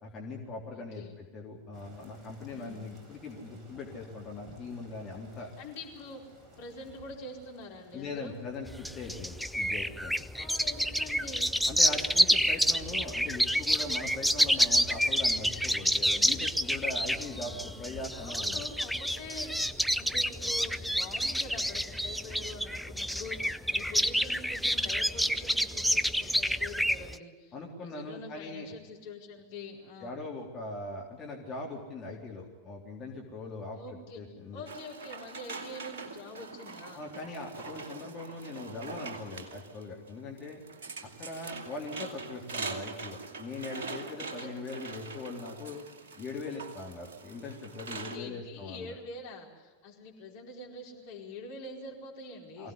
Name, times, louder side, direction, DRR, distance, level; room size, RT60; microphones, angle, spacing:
voice 1, 0.0-5.5 7.9-10.2 11.7-18.6 27.5-28.7 30.0-34.6 36.9-40.6 41.0-45.8 46.2-48.9 52.6-52.7, left 3 dB, 25° left, -2 dB, 3.7 m, -41 dB
voice 2, 0.7-1.1 2.5-2.8 5.6-6.2 6.6-8.4 10.3-11.5 17.1-19.6 19.9-30.2 33.7-34.2 34.5-37.1 44.4-44.6 48.1-52.7, left 2 dB, 50° left, 1 dB, 4.7 m, -45 dB
sound 1, 1.7-13.4, right 1 dB, 25° right, 4.9 m, -58 dB
sound 2, 8.7-27.2, equal, ahead, 0.7 m, -28 dB
sound 3, 34.7-48.2, right 4 dB, 60° right, 2.5 m, -43 dB
23.0 x 17.5 x 9.7 m, 1.3 s
figure-of-eight pair, 90°, 0 cm